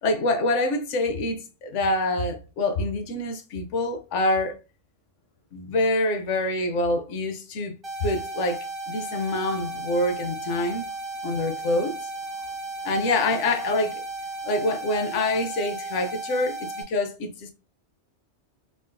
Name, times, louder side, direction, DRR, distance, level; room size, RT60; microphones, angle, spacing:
voice 1, 0.0-4.6 5.5-7.7 8.0-10.9 11.2-11.9 12.8-14.0 14.4-17.5, left 2 dB, 80° left, 1.0 m, -26 dB
sound 1, 7.8-16.8, right 2 dB, 30° right, 0.6 m, -35 dB
3.7 x 2.5 x 2.2 m
omnidirectional pair, 1.2 m